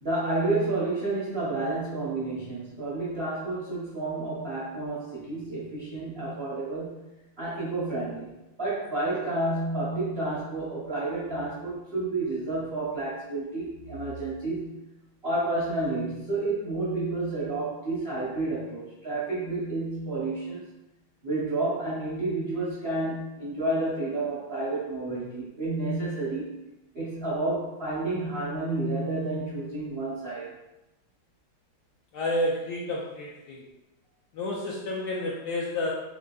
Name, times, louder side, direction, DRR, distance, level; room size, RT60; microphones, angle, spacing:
voice 1, 0.0-7.0 7.4-8.3 8.6-14.8 15.2-20.6 21.2-26.6 26.9-30.5, right 2 dB, 65° right, -8 dB, 0.6 m, -30 dB
voice 2, 32.1-33.6 34.3-35.9, left 1 dB, 75° left, -4 dB, 0.9 m, -30 dB
3.8 x 3.4 x 2.2 m, 0.98 s
omnidirectional pair, 2.2 m